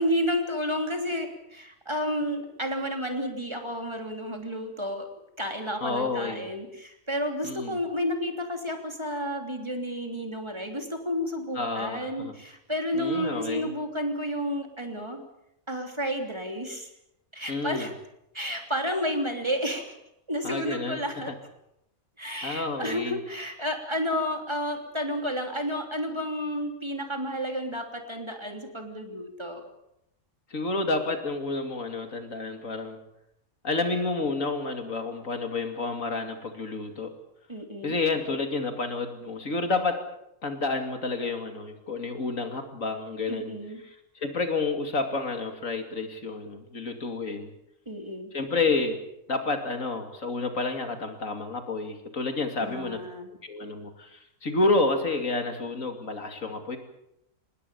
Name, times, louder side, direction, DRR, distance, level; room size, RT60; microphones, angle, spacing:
voice 1, 0.0-5.1 5.4-15.2 15.7-16.9 17.3-17.9 18.3-20.0 20.3-21.3 22.2-29.6 37.5-37.9 43.3-43.8 47.9-48.3 52.6-53.3, equal, 20° right, 4 dB, 3.2 m, -31 dB
voice 2, 5.8-6.5 7.4-7.8 11.5-12.3 12.9-13.7 17.5-17.9 20.4-21.0 22.4-23.2 30.5-33.0 33.6-37.1 37.8-40.0 40.4-43.5 44.1-47.5 48.3-49.0 49.3-53.0 53.4-56.8, left 3 dB, 70° left, 6 dB, 3.0 m, -29 dB
26.0 x 20.0 x 7.1 m, 0.80 s
omnidirectional pair, 1.4 m